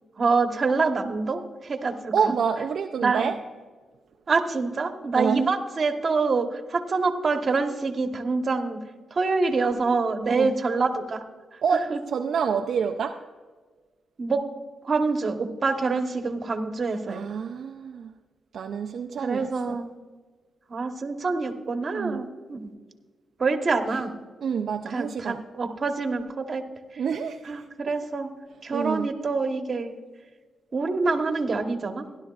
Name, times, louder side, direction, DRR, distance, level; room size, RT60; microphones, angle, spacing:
voice 1, 0.2-2.3 3.0-3.3 4.3-8.8 9.1-11.2 11.7-12.0 14.2-14.4 14.8-17.2 19.2-20.0 20.7-22.7 23.4-24.1 24.9-26.6 27.5-28.3 28.6-29.9 30.7-32.1, right 4 dB, 45° right, 6 dB, 1.2 m, -26 dB
voice 2, 2.1-3.4 5.1-5.5 10.3-10.5 11.6-13.2 17.1-18.1 18.5-19.8 21.9-22.3 24.4-25.4 27.0-27.7 28.7-29.1, right 6 dB, 70° right, 5 dB, 0.5 m, -27 dB
16.5 x 11.5 x 2.4 m, 1.4 s
cardioid pair, 80°, 0 cm